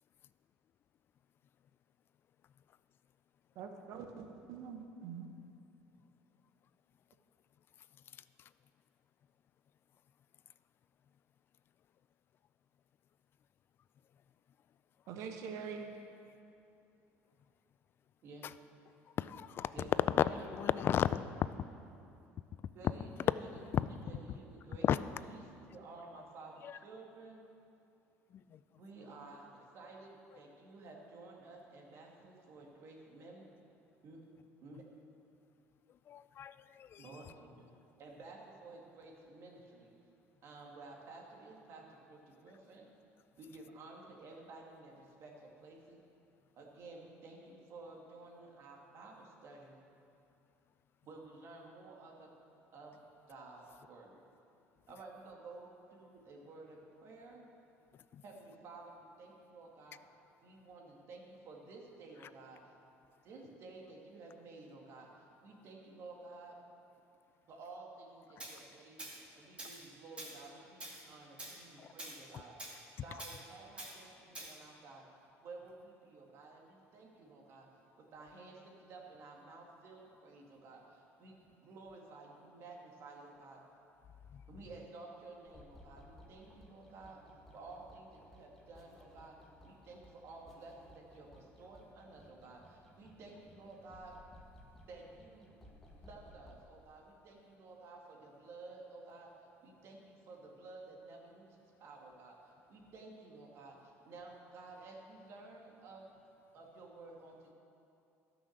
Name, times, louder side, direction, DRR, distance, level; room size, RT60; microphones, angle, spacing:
voice 1, 3.5-5.3 15.1-16.0, right 6 dB, 70° right, 4 dB, 0.9 m, -44 dB
voice 2, 18.2-18.7 19.7-21.3 22.7-27.4 28.7-33.5 34.0-34.2 34.6-34.8 37.0-37.7 38.0-39.9 40.4-42.9 43.4-46.0 46.6-49.8 51.0-52.3 52.7-53.0 53.3-54.2 54.9-57.4 58.2-60.0 60.4-62.6 63.2-66.6 67.5-69.0 69.3-72.6 73.0-75.0 75.4-77.7 78.0-83.6 84.5-87.2 87.5-89.4 89.6-94.2 94.9-95.6 96.0-99.3 99.6-106.2 106.5-107.5, right 3 dB, 55° right, 0 dB, 2.0 m, -53 dB
voice 3, 19.2-19.7 20.2-20.3 20.5-21.2 23.7-23.9 24.8-25.0 36.1-37.0, left 10 dB, 40° left, 15 dB, 0.3 m, -32 dB
Tools, 68.4-68.6 69.0-69.2 69.6-69.8 70.2-70.4 70.8-71.0 71.4-71.6 72.0-72.2 72.6-72.8 73.2-73.4 73.8-73.9 74.3-74.5, right 1 dB, 20° right, 2.2 m, -46 dB
sound 1, 85.4-96.5, left 1 dB, 5° left, 1.6 m, -59 dB
13.0 x 6.2 x 6.5 m, 2.7 s
cardioid pair, 120°, 6 cm